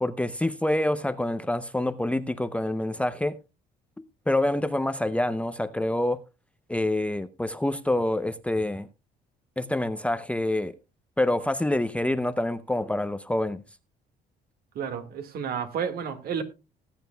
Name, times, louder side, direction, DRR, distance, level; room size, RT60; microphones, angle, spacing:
voice 1, 0.0-3.4 4.3-6.2 6.7-8.9 9.6-10.7 11.2-13.6, left 1 dB, 5° left, 0.6 m, -26 dB
voice 2, 14.8-16.4, right 7 dB, 65° right, 1.8 m, -31 dB
19.0 x 9.0 x 2.2 m
cardioid pair, 110°, 17 cm